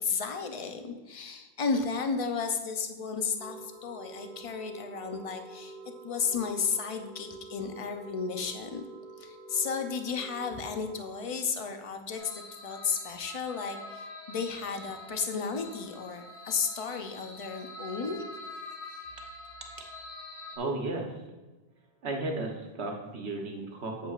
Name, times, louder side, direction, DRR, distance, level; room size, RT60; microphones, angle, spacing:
voice 1, 0.0-5.8 6.0-8.9 9.2-18.2, left 5 dB, 40° left, 6 dB, 0.6 m, -33 dB
sound 1, 3.4-11.3, right 3 dB, ahead, 1.3 m, -47 dB
sound 2, 12.2-20.6, left 2 dB, 85° left, 1.2 m, -45 dB
voice 2, 20.6-21.1 22.0-24.1, right 2 dB, 85° right, 1 dB, 1.3 m, -34 dB
8.1 x 7.6 x 2.4 m, 1.2 s
omnidirectional pair, 1.1 m